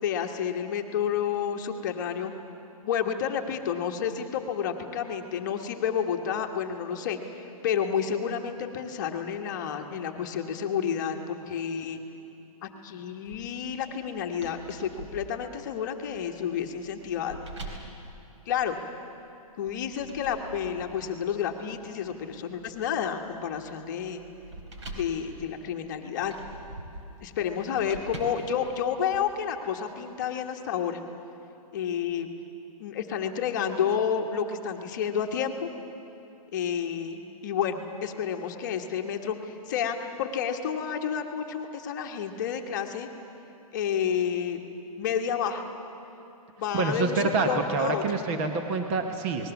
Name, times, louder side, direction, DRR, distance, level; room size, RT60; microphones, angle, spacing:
voice 1, 0.0-2.3 2.8-7.2 7.6-12.0 12.6-17.8 18.5-18.8 19.6-24.2 24.9-26.3 27.2-31.0 31.7-32.3 32.8-35.7 36.5-43.1 43.7-44.6 45.0-45.6 46.6-48.0, left 8 dB, 30° left, 3 dB, 1.2 m, -30 dB
sound 1, 13.2-19.1 19.6-29.2, right 2 dB, 50° right, 3.9 m, -46 dB
voice 2, 46.7-49.5, right 3 dB, 20° right, 5 dB, 0.9 m, -27 dB
28.0 x 20.0 x 7.1 m, 2.9 s
hypercardioid pair, 175°, 19 cm